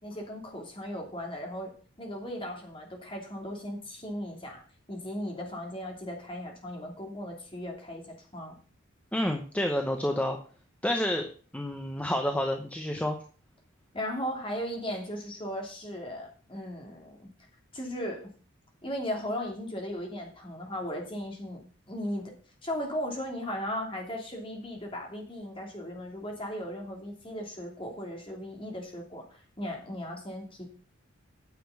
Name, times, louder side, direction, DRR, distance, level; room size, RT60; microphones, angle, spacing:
voice 1, 0.0-1.7 2.0-4.6 4.9-8.5 13.9-17.3 17.7-18.2 18.8-22.3 22.6-30.6, equal, 25° left, 1 dB, 2.8 m, -37 dB
voice 2, 9.1-10.4 10.8-11.3 11.5-13.2, left 1 dB, 5° left, 4 dB, 0.8 m, -29 dB
9.4 x 6.8 x 7.1 m, 0.43 s
head